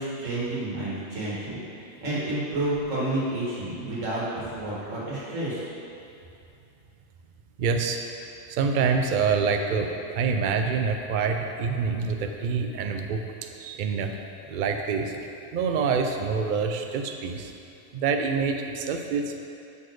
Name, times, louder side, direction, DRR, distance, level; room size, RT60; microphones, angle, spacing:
voice 1, 0.0-5.6, right 1 dB, 80° right, -9 dB, 2.0 m, -30 dB
voice 2, 7.6-8.0 8.5-14.1 14.5-15.1 15.5-17.5 17.9-19.4, right 5 dB, 60° right, 4 dB, 0.5 m, -26 dB
7.2 x 4.2 x 4.6 m, 2.6 s
omnidirectional pair, 1.3 m